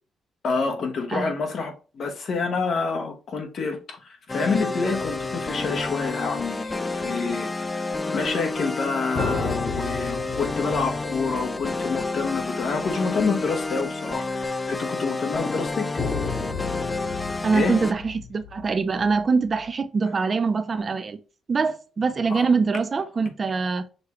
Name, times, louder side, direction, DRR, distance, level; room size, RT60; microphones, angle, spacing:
voice 1, 0.4-15.9 17.5-17.8 22.3-22.5, left 4 dB, 55° left, 0.9 m, -28 dB
sound 1, 4.3-17.9, left 3 dB, 20° left, 0.3 m, -30 dB
sound 2, 4.9-6.8 9.1-12.9 13.2-13.3 16.0-19.6, left 4 dB, 40° left, 1.3 m, -34 dB
voice 2, 17.4-21.2 21.5-23.9, right 4 dB, 40° right, 0.5 m, -24 dB
6.3 x 2.3 x 3.0 m
cardioid pair, 90°, 0 cm